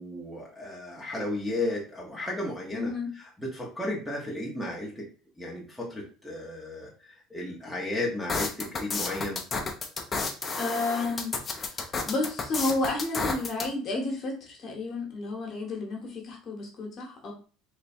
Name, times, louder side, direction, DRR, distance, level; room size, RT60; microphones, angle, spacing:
voice 1, 0.0-2.9 3.5-5.1 5.4-6.9 7.3-9.4, left 1 dB, ahead, -5 dB, 0.9 m, -34 dB
voice 2, 2.7-3.1 10.6-17.3, left 2 dB, 40° left, 1 dB, 1.1 m, -32 dB
sound 1, 8.3-13.7, left 4 dB, 20° left, 0.6 m, -31 dB
3.3 x 2.2 x 4.2 m, 0.38 s
cardioid pair, 145°, 0 cm